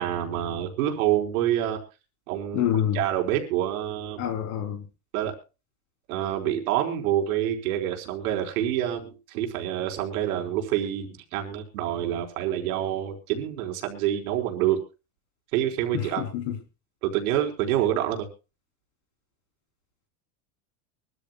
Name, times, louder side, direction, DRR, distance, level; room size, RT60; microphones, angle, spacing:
voice 1, 0.0-1.8 2.3-4.3 5.1-5.3 6.1-14.8 15.5-16.2 17.0-18.3, right 11 dB, 75° right, 4.3 m, -27 dB
voice 2, 2.5-3.0 4.2-4.8 15.9-16.6, left 10 dB, 60° left, 3.3 m, -27 dB
24.0 x 13.5 x 2.2 m
supercardioid pair, 150°, 43 cm